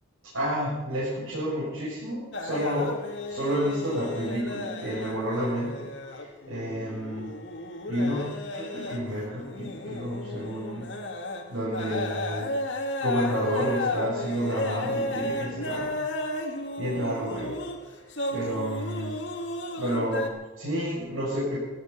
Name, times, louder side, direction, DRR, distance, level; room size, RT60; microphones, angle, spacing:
voice 1, 0.2-7.3 7.9-10.9 11.5-12.6 13.0-16.0 16.8-17.6 18.3-19.2 19.8-21.6, equal, 90° right, -9 dB, 7.7 m, -30 dB
sound 1, 2.3-20.3, left 1 dB, 60° left, 2.1 m, -33 dB
17.5 x 13.5 x 6.0 m, 1.1 s
head